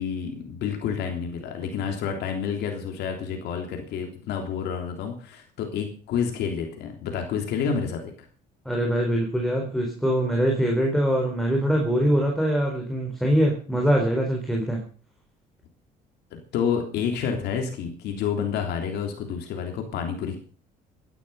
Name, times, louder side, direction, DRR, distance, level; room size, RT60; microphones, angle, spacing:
voice 1, 0.0-8.3 16.3-20.4, left 7 dB, 80° left, 3 dB, 3.4 m, -29 dB
voice 2, 8.6-14.8, equal, ahead, 0 dB, 4.5 m, -23 dB
16.5 x 12.0 x 5.6 m, 0.40 s
cardioid pair, 110°, 17 cm